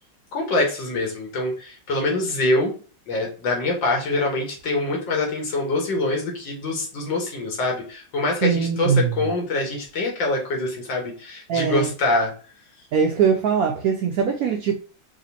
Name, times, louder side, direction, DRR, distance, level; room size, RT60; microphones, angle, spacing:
voice 1, 0.3-2.7 3.1-12.3, left 2 dB, 70° left, 0 dB, 2.0 m, -24 dB
voice 2, 8.4-9.2 11.5-11.9 12.9-14.7, right 6 dB, 85° right, 2 dB, 0.8 m, -21 dB
4.9 x 2.8 x 2.8 m, 0.37 s
omnidirectional pair, 2.1 m